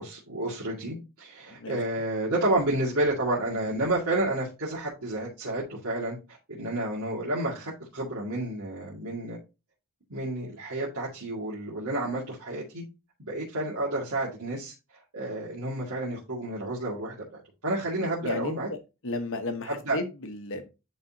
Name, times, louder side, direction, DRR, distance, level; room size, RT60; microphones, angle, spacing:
voice 1, 0.0-6.2 6.5-9.4 10.1-12.8 13.2-14.7 15.1-18.7 19.6-20.0, right 1 dB, 75° right, 2.3 m, -30 dB
voice 2, 18.2-18.6 19.0-20.7, left 2 dB, 65° left, 1.2 m, -33 dB
10.0 x 4.0 x 2.9 m
head